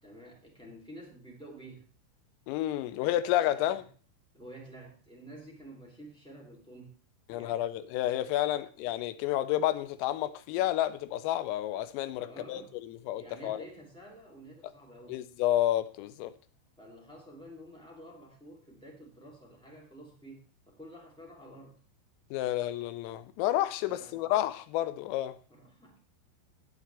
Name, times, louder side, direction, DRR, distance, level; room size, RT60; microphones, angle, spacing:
voice 1, 0.0-1.8 2.9-3.8 4.3-7.0 7.3-7.6 8.5-8.6 12.2-12.7 13.1-15.2 16.8-21.8 23.8-24.3 25.5-26.0, right 1 dB, ahead, 1.2 m, -50 dB
voice 2, 2.5-3.8 7.3-13.6 15.1-16.3 22.3-25.3, left 13 dB, 85° left, 3.4 m, -30 dB
17.0 x 8.6 x 3.4 m
omnidirectional pair, 5.9 m